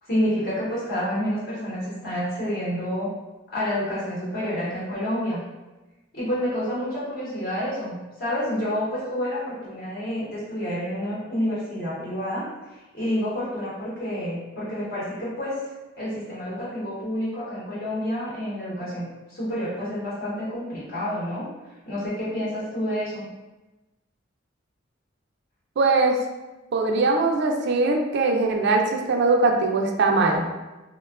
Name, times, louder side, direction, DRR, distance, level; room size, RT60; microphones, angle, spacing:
voice 1, 0.0-3.1 3.5-5.4 6.1-23.2, equal, 55° left, -8 dB, 0.9 m, -29 dB
voice 2, 25.8-26.2 26.7-30.5, right 3 dB, 60° right, 2 dB, 0.4 m, -21 dB
3.4 x 2.2 x 2.3 m, 1.1 s
head